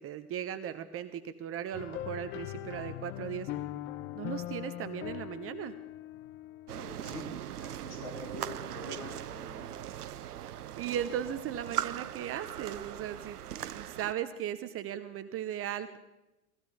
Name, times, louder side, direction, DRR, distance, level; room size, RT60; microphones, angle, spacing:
voice 1, 0.0-3.5 4.1-5.7 10.4-13.4 13.7-16.0, right 10 dB, 30° right, 10 dB, 0.9 m, -37 dB
sound 1, 1.7-7.3, left 14 dB, 25° left, 0.5 m, -41 dB
voice 2, 6.7-7.2 7.6-9.6, left 2 dB, 55° left, 0 dB, 6.2 m, -45 dB
sound 2, 6.7-14.1, right 11 dB, 80° right, 0.6 m, -40 dB
20.5 x 15.5 x 4.0 m, 0.95 s
figure-of-eight pair, 90°, 45 cm